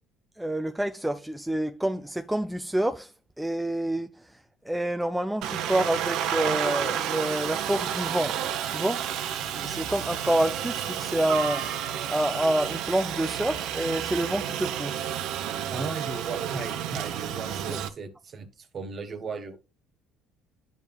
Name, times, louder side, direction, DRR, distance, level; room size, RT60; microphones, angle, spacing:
voice 1, 0.4-3.1 3.4-4.1 4.7-9.1 9.4-11.7 12.1-15.1 17.7-17.8, right 1 dB, 5° right, 0.4 m, -28 dB
Aircraft, 5.4-17.9, right 9 dB, 70° right, 0.8 m, -31 dB
voice 2, 15.7-19.6, right 4 dB, 45° right, 1.5 m, -37 dB
10.5 x 5.4 x 2.3 m
supercardioid pair, 80°, 0 cm